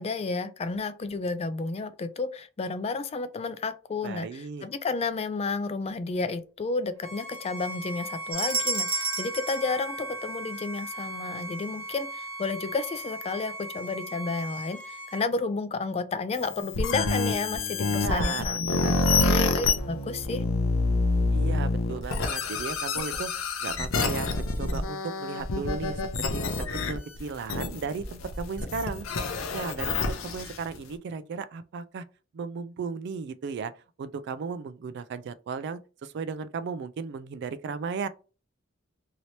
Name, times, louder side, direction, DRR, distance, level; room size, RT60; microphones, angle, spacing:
voice 1, 0.0-19.0 19.2-20.4, left 3 dB, 30° left, 0.3 m, -31 dB
voice 2, 4.0-4.7 17.8-19.3 21.3-23.3 23.6-29.1 29.5-32.0 32.3-38.1, right 5 dB, 60° right, 0.3 m, -35 dB
Bowed string instrument, 7.0-15.3, right 1 dB, 75° right, 0.9 m, -38 dB
sound 1, 8.3-10.7, right 3 dB, 25° right, 1.0 m, -31 dB
sound 2, 16.3-30.8, left 3 dB, 80° left, 0.6 m, -27 dB
2.8 x 2.7 x 3.1 m
head